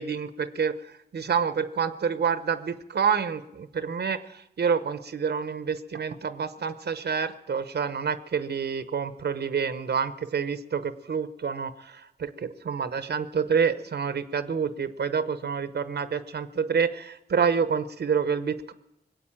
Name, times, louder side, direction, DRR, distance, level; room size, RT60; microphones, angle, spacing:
voice 1, 0.0-18.7, right 6 dB, 75° right, 12 dB, 0.8 m, -28 dB
20.5 x 8.0 x 8.8 m, 0.88 s
cardioid pair, 70°, 17 cm